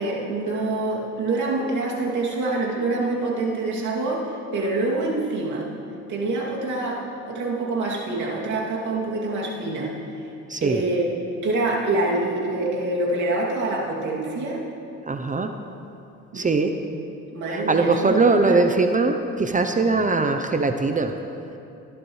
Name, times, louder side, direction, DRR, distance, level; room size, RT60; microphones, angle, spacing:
voice 1, 0.0-4.2 4.5-5.7 6.1-7.0 7.3-9.9 10.6-11.1 11.3-14.6 16.3-16.9 17.3-18.5, right 2 dB, 75° right, -4 dB, 2.6 m, -26 dB
voice 2, 10.5-10.8 15.1-15.5 16.3-16.7 17.5-21.2, right 3 dB, 25° right, 7 dB, 0.6 m, -21 dB
19.0 x 11.0 x 3.2 m, 2.8 s
cardioid pair, 90°, 30 cm